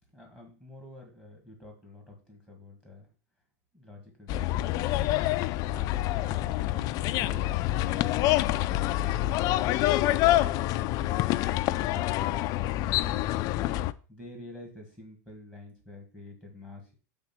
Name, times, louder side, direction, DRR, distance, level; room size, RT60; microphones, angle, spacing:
voice 1, 0.1-3.1 3.7-5.1 5.7-6.0 6.2-8.9 14.1-16.9, left 1 dB, 5° right, 1 dB, 1.8 m, -48 dB
sound 1, 4.3-13.9, left 15 dB, 40° left, 0.4 m, -27 dB
7.8 x 3.7 x 6.0 m, 0.37 s
supercardioid pair, 145°, 9 cm